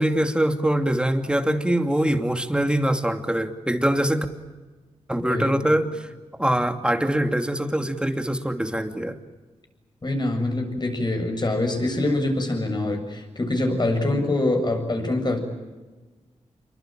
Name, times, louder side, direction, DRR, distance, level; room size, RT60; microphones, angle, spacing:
voice 1, 0.0-4.3 5.1-6.1 6.4-9.2, right 1 dB, 10° right, 6 dB, 2.6 m, -23 dB
voice 2, 5.2-5.6 10.0-15.4, left 2 dB, 40° left, 5 dB, 7.4 m, -24 dB
28.0 x 23.5 x 9.1 m, 1.3 s
cardioid pair, 75°, 12 cm